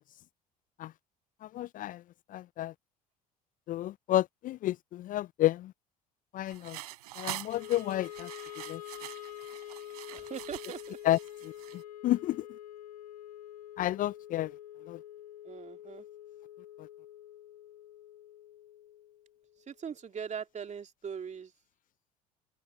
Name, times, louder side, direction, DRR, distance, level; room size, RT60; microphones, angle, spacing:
voice 1, 1.4-2.0 2.3-2.7 3.7-5.7 6.3-6.8 7.2-8.3 8.7-8.8 11.0-11.2 11.4-11.5 12.0-12.5 13.8-14.5 14.9-15.0, left 14 dB, 45° left, 0.4 m, -30 dB
sound 1, 6.5-11.8, right 16 dB, 80° right, 3.6 m, -45 dB
Wind instrument woodwind instrument, 7.5-19.7, left 12 dB, 85° left, 1.0 m, -47 dB
voice 2, 10.1-11.0 15.4-16.0 19.7-21.5, right 7 dB, 35° right, 2.7 m, -41 dB
open air
hypercardioid pair, 65°, 20 cm